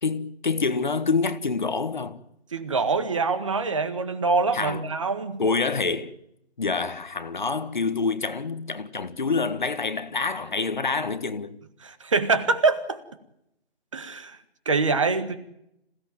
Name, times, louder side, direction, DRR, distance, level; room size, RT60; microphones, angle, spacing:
voice 1, 0.0-2.2 4.5-4.8 5.4-6.2 6.6-11.6, left 4 dB, 45° left, 1.6 m, -27 dB
voice 2, 2.5-5.4 11.8-13.0 13.9-14.4 14.6-15.4, right 4 dB, 30° right, 1.8 m, -24 dB
27.0 x 17.0 x 9.2 m
figure-of-eight pair, 165°, 33 cm